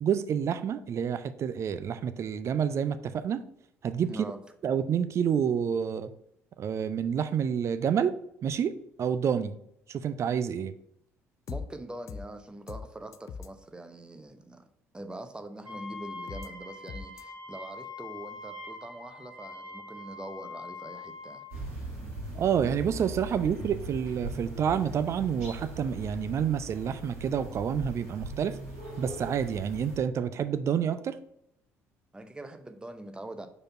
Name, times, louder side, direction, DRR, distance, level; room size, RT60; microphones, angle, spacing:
voice 1, 0.0-3.4 3.8-4.1 4.6-6.1 6.6-8.2 8.4-9.5 9.9-10.7 22.3-28.6 29.0-31.2, right 8 dB, 40° right, 0.5 m, -28 dB
voice 2, 4.0-4.4 11.5-14.6 14.9-21.4 32.1-33.5, right 1 dB, 10° right, 0.8 m, -43 dB
sound 1, 11.5-11.7 12.1-12.3 12.7-12.9 13.1-13.5 16.3-16.5 16.9-17.2, left 6 dB, 45° left, 0.4 m, -39 dB
Wind instrument woodwind instrument, 15.6-21.6, left 3 dB, 55° right, 2.1 m, -43 dB
sound 2, 21.5-30.0, right 2 dB, 80° right, 2.1 m, -40 dB
5.1 x 4.3 x 5.8 m
figure-of-eight pair, 50°, 7 cm